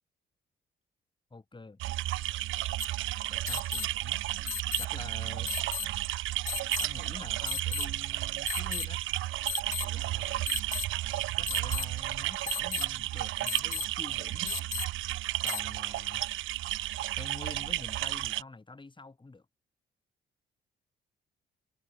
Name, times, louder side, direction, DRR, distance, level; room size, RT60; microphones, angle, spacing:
voice 1, 1.3-1.8 3.3-4.2 4.8-5.5 5.8-6.0 6.8-9.0 9.7-10.5 11.4-14.6 15.4-16.2 17.2-19.5, left 3 dB, 25° left, 4.2 m, -47 dB
sound 1, 1.8-18.4, right 16 dB, 75° right, 0.7 m, -33 dB
sound 2, 2.8-2.9 3.5-3.9 4.5-4.9 5.5-5.9 6.5-6.9 7.5-7.9 8.5-8.9 9.5-9.8 10.5-10.8 11.5-11.8 12.5-12.8 13.5-13.8 14.5-14.8 15.5-15.6, left 10 dB, 45° left, 0.4 m, -34 dB
supercardioid pair, 60°, 20 cm